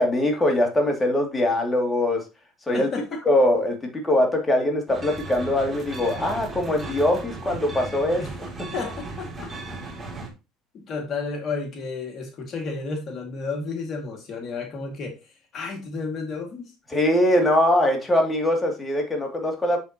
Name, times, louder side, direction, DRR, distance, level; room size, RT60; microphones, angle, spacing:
voice 1, 0.0-2.3 2.7-2.9 3.3-8.7 16.9-19.8, left 1 dB, 15° left, 2.6 m, -22 dB
voice 2, 2.7-3.2 8.2-8.3 8.7-9.5 10.7-16.7, left 4 dB, 45° left, 2.2 m, -32 dB
sound 1, 4.9-10.3, right 2 dB, 25° right, 2.9 m, -36 dB
7.2 x 7.1 x 3.0 m
supercardioid pair, 95°, 0 cm